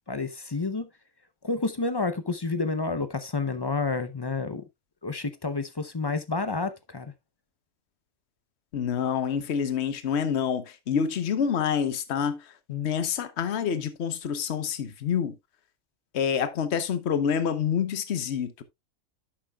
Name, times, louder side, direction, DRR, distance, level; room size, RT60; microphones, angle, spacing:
voice 1, 0.1-0.9 1.4-4.7 5.0-7.1, left 3 dB, 30° left, 0.5 m, -29 dB
voice 2, 8.7-12.4 12.7-15.3 16.1-18.6, left 7 dB, 55° left, 1.1 m, -27 dB
11.0 x 7.6 x 2.3 m
omnidirectional pair, 1.4 m